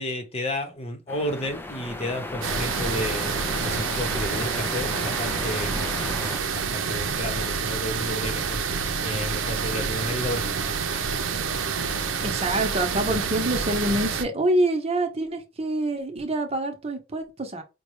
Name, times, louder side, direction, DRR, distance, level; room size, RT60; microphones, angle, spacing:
voice 1, 0.0-3.3 3.6-5.7 6.5-8.6 9.0-10.8, left 1 dB, 30° left, 0.9 m, -32 dB
sound 1, 1.1-6.4, left 1 dB, 10° left, 0.4 m, -34 dB
sound 2, 2.4-14.2, right 5 dB, 90° right, 0.6 m, -28 dB
voice 2, 12.2-17.6, right 1 dB, 30° right, 0.9 m, -26 dB
5.2 x 2.3 x 3.1 m
head